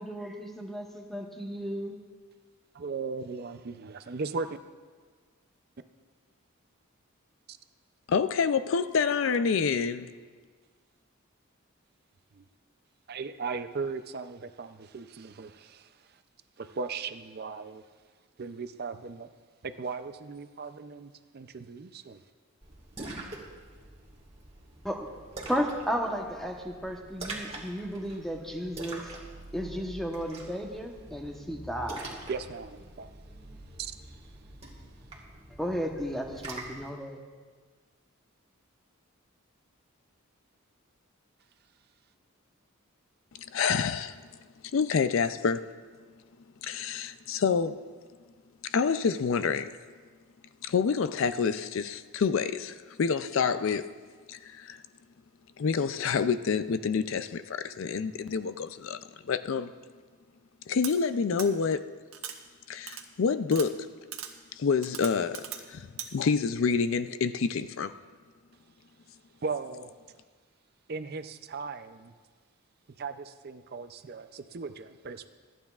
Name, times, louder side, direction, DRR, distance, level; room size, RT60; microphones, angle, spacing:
voice 1, 0.0-2.0 24.8-25.0 25.5-29.0 29.5-32.1 35.6-37.2, equal, ahead, 1 dB, 1.0 m, -34 dB
voice 2, 2.7-4.6 7.5-7.6 12.3-12.4 13.1-16.2 16.6-17.8 18.4-19.3 19.6-22.2 32.3-33.1 33.8-34.2 69.4-69.9 70.9-72.1 73.0-75.3, right 4 dB, 45° right, 10 dB, 0.5 m, -37 dB
voice 3, 8.1-10.1 43.4-44.2 44.7-45.6 46.6-47.8 48.6-49.7 50.6-53.9 54.3-54.8 55.6-59.7 60.7-61.9 62.7-63.9 64.5-67.9, left 5 dB, 65° left, 12 dB, 0.4 m, -28 dB
Splash splatter, 22.6-36.9, right 2 dB, 30° right, 1.7 m, -45 dB
sound 1, 60.8-60.9 61.4-61.5 62.1-62.4 62.9-63.0 63.5-63.7 64.1-64.3 64.8-65.6 66.0-66.1, right 9 dB, 85° right, 1.0 m, -38 dB
26.5 x 9.1 x 2.4 m, 1.5 s
head